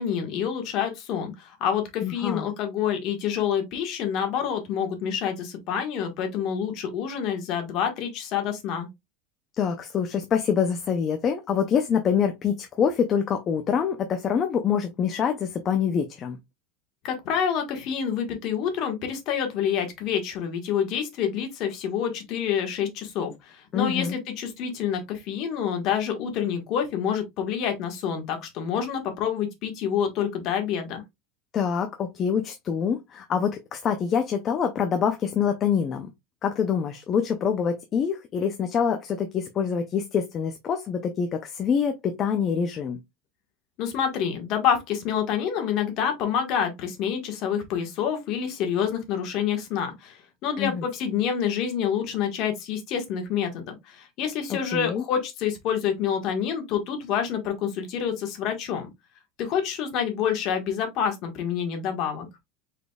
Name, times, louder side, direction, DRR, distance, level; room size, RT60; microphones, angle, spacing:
voice 1, 0.0-8.9 17.0-31.0 43.8-58.9 59.4-62.3, left 8 dB, 40° left, 1.5 m, -27 dB
voice 2, 2.0-2.5 9.6-16.4 23.7-24.2 31.5-36.1 36.4-43.0 50.6-50.8 54.5-55.0, left 7 dB, 25° left, 0.5 m, -25 dB
5.0 x 4.1 x 2.3 m
supercardioid pair, 175°, 0 cm